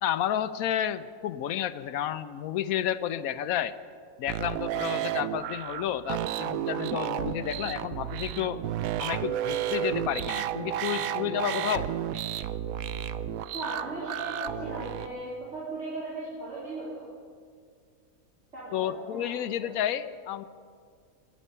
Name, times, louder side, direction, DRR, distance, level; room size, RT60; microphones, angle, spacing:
voice 1, 0.0-3.7 4.2-8.6 9.0-11.9 18.7-20.4, left 10 dB, 80° left, 13 dB, 1.0 m, -31 dB
sound 1, 4.3-15.1, right 11 dB, 75° right, 1.0 m, -32 dB
voice 2, 13.5-17.1 18.5-19.7, right 2 dB, 50° right, -9 dB, 4.0 m, -37 dB
24.5 x 10.0 x 5.5 m, 2.1 s
omnidirectional pair, 1.5 m